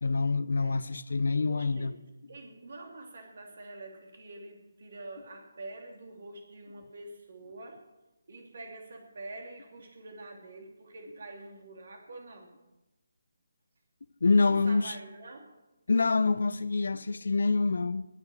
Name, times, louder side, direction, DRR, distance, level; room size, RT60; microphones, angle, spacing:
voice 1, 0.0-1.9 14.2-15.0 15.9-18.1, left 3 dB, 55° left, 0.6 m, -26 dB
voice 2, 1.3-1.9 2.3-7.9 8.3-12.5 14.4-15.5, right 2 dB, 50° right, 3.1 m, -46 dB
19.0 x 7.3 x 6.5 m
figure-of-eight pair, 145°, 0 cm